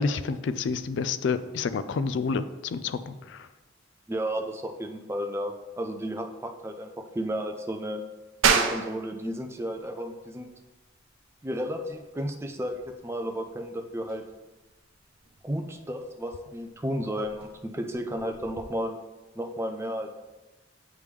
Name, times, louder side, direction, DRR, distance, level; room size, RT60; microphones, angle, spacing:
voice 1, 0.0-3.5, left 4 dB, 65° left, 13 dB, 0.3 m, -29 dB
voice 2, 4.1-8.0 8.5-10.5 11.4-14.2 15.4-19.0 19.4-20.1, equal, 15° right, 4 dB, 0.4 m, -33 dB
sound 1, 8.4-18.7, right 6 dB, 90° right, 0.5 m, -33 dB
8.3 x 3.5 x 3.2 m, 1.1 s
head